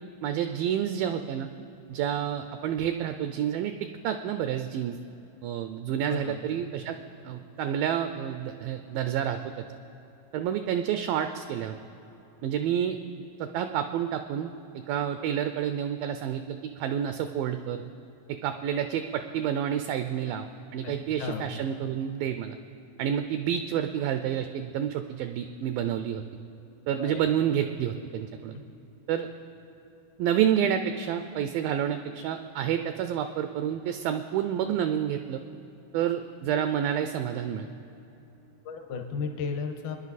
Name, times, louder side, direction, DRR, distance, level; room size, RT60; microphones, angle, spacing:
voice 1, 0.2-1.5 1.9-5.0 5.4-7.0 7.3-9.6 10.3-11.8 12.4-14.5 14.9-17.8 18.3-22.6 23.0-26.2 26.9-28.6 29.1-29.3 30.2-35.4 35.9-37.7, right 9 dB, 85° right, 8 dB, 2.0 m, -29 dB
voice 2, 6.1-6.4 20.8-20.9 21.2-21.5 27.0-27.3 38.6-40.0, left 5 dB, 75° left, 4 dB, 2.9 m, -34 dB
25.0 x 10.5 x 4.1 m, 3.0 s
omnidirectional pair, 4.6 m